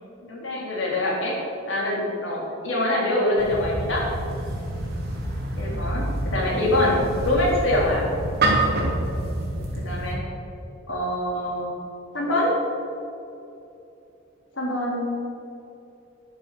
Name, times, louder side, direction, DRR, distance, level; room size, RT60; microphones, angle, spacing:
voice 1, 0.2-1.4 1.7-4.1 5.6-8.0 9.8-10.2 10.9-11.7 12.1-12.5 14.5-15.1, left 1 dB, 70° left, -3 dB, 3.6 m, -24 dB
sound 1, 3.4-10.1, right 1 dB, 55° right, 2.9 m, -27 dB
10.5 x 10.0 x 6.8 m, 2.8 s
head